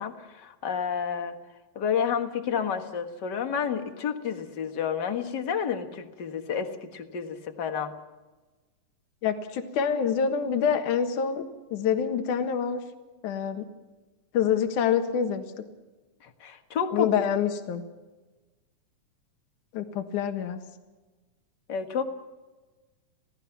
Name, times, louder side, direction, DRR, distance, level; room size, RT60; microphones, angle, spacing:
voice 1, 0.0-1.4 1.7-7.9 16.2-17.1 21.7-22.0, left 7 dB, 45° left, 6 dB, 1.6 m, -30 dB
voice 2, 9.2-11.4 11.7-12.8 13.2-13.6 14.3-15.4 16.9-17.8 19.7-20.6, left 7 dB, 70° left, 6 dB, 2.9 m, -26 dB
29.5 x 17.5 x 5.9 m, 1.2 s
omnidirectional pair, 3.8 m